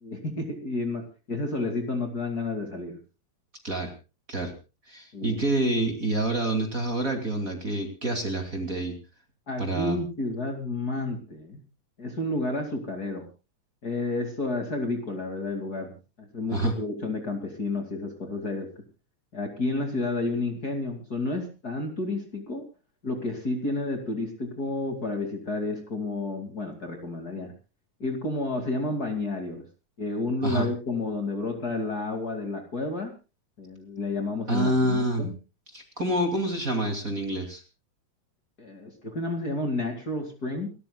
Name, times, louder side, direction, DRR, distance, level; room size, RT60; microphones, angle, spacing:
voice 1, 0.0-3.0 5.1-5.4 9.5-11.6 12.0-13.3 13.8-18.7 19.3-22.6 23.0-27.5 28.0-29.6 30.0-33.1 33.6-35.3 38.6-40.7, left 2 dB, 30° left, 4 dB, 2.6 m, -31 dB
voice 2, 4.9-9.0 9.6-10.0 16.5-16.7 30.4-30.7 34.5-35.3 35.7-37.6, right 1 dB, 30° right, 4 dB, 2.8 m, -27 dB
29.5 x 13.5 x 2.3 m, 0.31 s
omnidirectional pair, 3.5 m